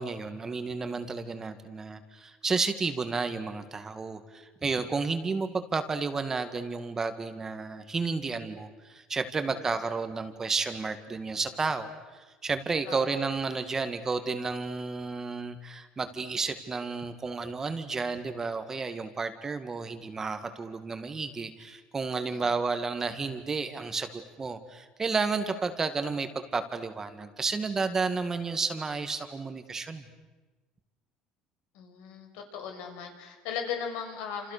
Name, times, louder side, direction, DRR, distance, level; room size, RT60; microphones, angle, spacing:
voice 1, 0.0-30.1, right 4 dB, 20° right, 9 dB, 2.0 m, -32 dB
voice 2, 31.7-34.5, left 7 dB, 80° left, 4 dB, 6.1 m, -37 dB
29.5 x 28.0 x 6.8 m, 1.2 s
cardioid pair, 140°, 2 cm